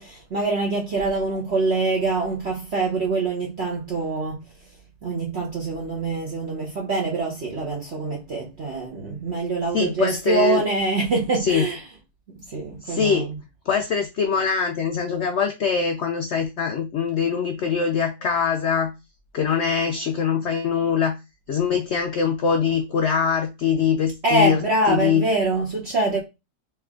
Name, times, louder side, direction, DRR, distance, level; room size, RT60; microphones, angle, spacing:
voice 1, 0.0-4.4 5.0-11.8 12.4-13.3 24.2-26.2, right 3 dB, 45° right, 1.1 m, -24 dB
voice 2, 9.7-10.6 11.4-11.6 12.8-13.3 13.7-18.9 19.3-21.2 21.5-25.3, left 6 dB, 80° left, 0.6 m, -23 dB
3.4 x 3.1 x 3.5 m
omnidirectional pair, 1.8 m